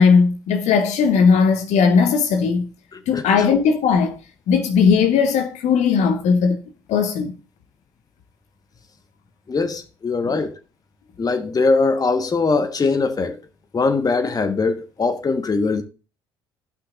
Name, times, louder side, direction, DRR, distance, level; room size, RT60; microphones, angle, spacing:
voice 1, 0.0-2.7 3.1-4.2 4.5-6.6 6.9-7.3 10.2-10.4, left 5 dB, 55° left, 1.0 m, -17 dB
voice 2, 2.9-3.2 9.5-10.5 11.2-13.4 13.7-15.8, left 4 dB, 25° left, 1.2 m, -21 dB
15.5 x 5.8 x 2.5 m
figure-of-eight pair, 55°, 14 cm